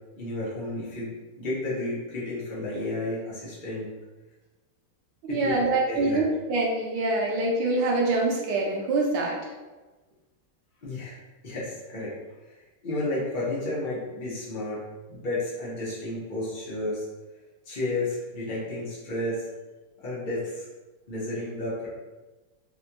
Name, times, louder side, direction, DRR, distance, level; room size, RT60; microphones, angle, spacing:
voice 1, 0.1-3.9 5.3-6.2 10.8-11.2 11.4-12.1 12.5-14.8 15.1-17.1 17.7-19.4 20.0-20.7 21.1-21.9, left 2 dB, 80° left, -7 dB, 0.4 m, -32 dB
voice 2, 5.2-9.4, right 2 dB, 70° right, -2 dB, 1.2 m, -25 dB
4.2 x 2.2 x 2.8 m, 1.2 s
omnidirectional pair, 2.3 m